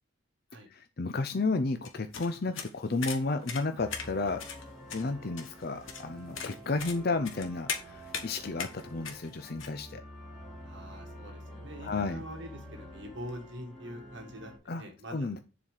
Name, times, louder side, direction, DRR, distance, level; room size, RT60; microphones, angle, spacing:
voice 1, 0.7-4.4 4.9-10.0 11.8-12.2 14.7-14.8 15.1-15.4, left 3 dB, 45° left, 8 dB, 0.5 m, -32 dB
sound 1, 1.8-9.7, left 6 dB, 75° left, 1.3 m, -40 dB
sound 2, 3.7-14.6, equal, ahead, 2.7 m, -48 dB
voice 2, 10.6-15.4, equal, 60° right, 3 dB, 1.7 m, -44 dB
7.2 x 4.1 x 6.5 m, 0.32 s
head